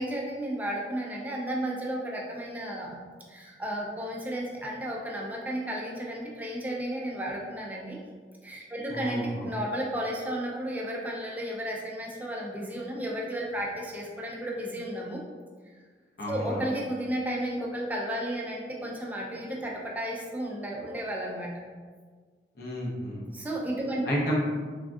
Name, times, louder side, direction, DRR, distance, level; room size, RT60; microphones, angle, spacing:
voice 1, 0.0-3.0 3.3-8.0 8.4-15.2 16.3-21.5 23.3-24.1, right 1 dB, 10° right, -3 dB, 0.3 m, -33 dB
voice 2, 8.9-9.5 16.2-16.6 22.6-23.2 24.0-24.4, equal, 55° left, -4 dB, 0.7 m, -31 dB
3.4 x 2.3 x 2.5 m, 1.6 s
head